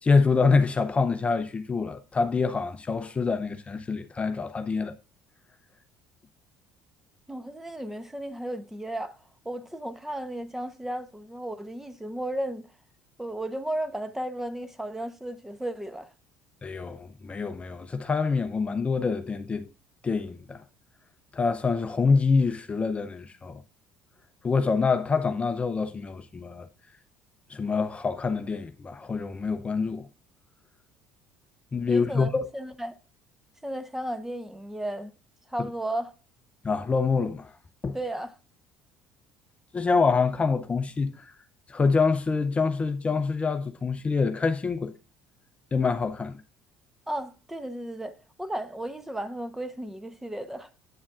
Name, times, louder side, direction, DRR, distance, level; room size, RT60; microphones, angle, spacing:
voice 1, 0.0-4.9 16.6-19.7 20.0-20.6 21.3-23.6 24.4-26.7 27.5-30.1 31.7-32.5 35.6-35.7 36.6-37.5 37.8-38.0 39.7-41.3 41.7-45.0 45.7-46.4, left 4 dB, 25° left, 0.6 m, -26 dB
voice 2, 7.3-9.2 9.4-12.7 13.2-16.1 31.9-33.0 33.6-35.1 35.5-36.1 37.9-38.3 47.1-48.1 48.4-50.7, right 1 dB, 5° right, 0.9 m, -34 dB
8.5 x 7.2 x 2.4 m
supercardioid pair, 80°, 5 cm